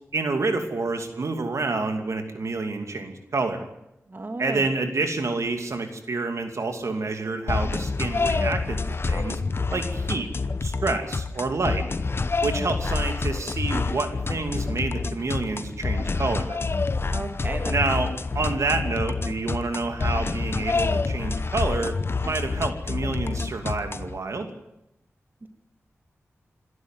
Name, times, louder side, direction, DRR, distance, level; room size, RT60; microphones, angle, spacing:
voice 1, 0.1-3.7 4.4-8.8 9.1-9.4 9.7-10.3 10.6-11.9 12.4-16.6 17.7-22.0 22.2-24.5, right 3 dB, 70° right, 6 dB, 2.7 m, -28 dB
voice 2, 4.1-4.6 17.1-17.8 25.4-25.5, right 2 dB, 40° right, 6 dB, 2.1 m, -33 dB
sound 1, 7.5-24.2, left 4 dB, 50° left, 0.9 m, -27 dB
26.5 x 12.5 x 9.4 m, 0.84 s
wide cardioid pair, 85°, 5 cm